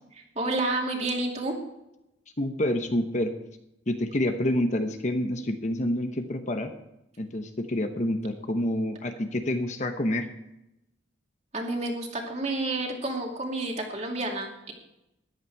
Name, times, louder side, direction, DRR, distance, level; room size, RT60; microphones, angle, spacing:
voice 1, 0.1-1.5 11.5-14.7, right 2 dB, 35° right, 1 dB, 2.4 m, -30 dB
voice 2, 2.4-3.3 3.9-6.7 7.2-10.3, left 1 dB, 35° left, 6 dB, 1.0 m, -28 dB
14.5 x 11.0 x 4.7 m, 0.87 s
head